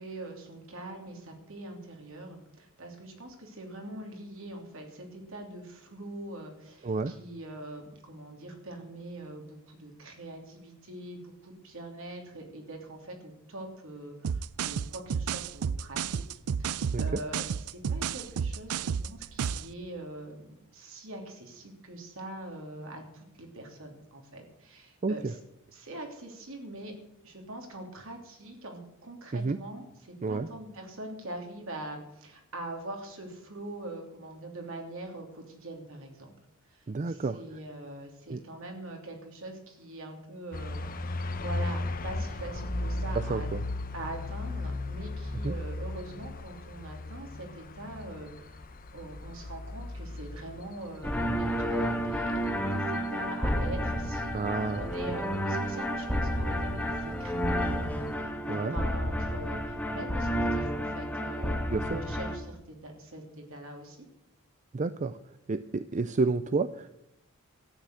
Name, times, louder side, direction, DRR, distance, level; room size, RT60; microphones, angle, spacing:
voice 1, 0.0-25.4 25.7-26.9 27.2-36.3 36.7-43.5 43.9-64.1, right 1 dB, 65° right, 2 dB, 3.2 m, -43 dB
voice 2, 6.8-7.1 16.9-17.2 25.0-25.3 29.3-29.6 30.2-30.5 36.9-37.4 38.3-38.4 43.2-43.6 45.4-45.5 54.3-54.8 58.5-58.8 61.7-62.0 64.7-65.2 65.5-66.9, right 3 dB, 35° right, 13 dB, 0.4 m, -30 dB
sound 1, 14.2-19.7, right 7 dB, 90° right, 0.4 m, -31 dB
sound 2, 40.5-58.1, left 2 dB, 40° left, 0.8 m, -37 dB
sound 3, 51.0-62.4, equal, 5° left, 1.5 m, -31 dB
13.0 x 9.0 x 7.7 m, 0.85 s
head